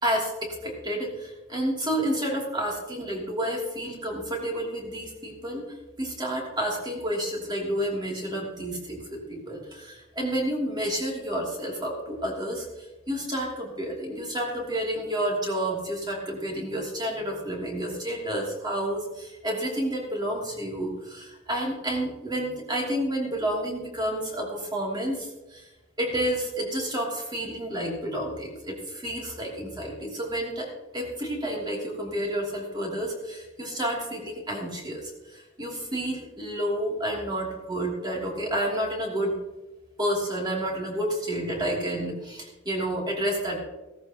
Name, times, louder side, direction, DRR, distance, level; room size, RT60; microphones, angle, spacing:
voice 1, 0.0-5.7 6.0-25.7 26.0-30.7 30.9-39.4 40.0-43.6, right 1 dB, 20° right, -2 dB, 2.9 m, -30 dB
15.5 x 14.0 x 3.0 m, 1.1 s
head